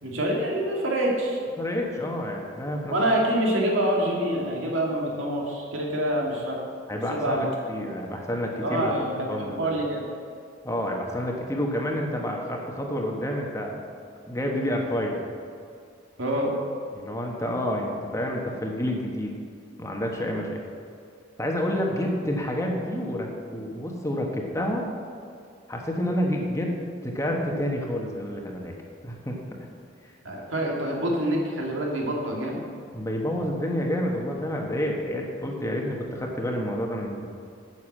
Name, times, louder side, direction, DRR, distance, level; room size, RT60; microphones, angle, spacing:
voice 1, 0.0-1.4 2.9-6.6 7.1-7.5 8.6-10.0 16.2-16.5 30.2-32.6, right 1 dB, 85° right, -1 dB, 2.3 m, -26 dB
voice 2, 1.6-3.0 6.9-8.9 9.3-9.7 10.6-13.7 14.3-15.2 16.9-19.3 19.8-20.6 21.4-24.8 25.7-26.8 27.0-28.7 29.0-29.4 32.9-37.3, equal, 15° left, 0 dB, 1.2 m, -29 dB
9.6 x 7.2 x 7.4 m, 2.3 s
head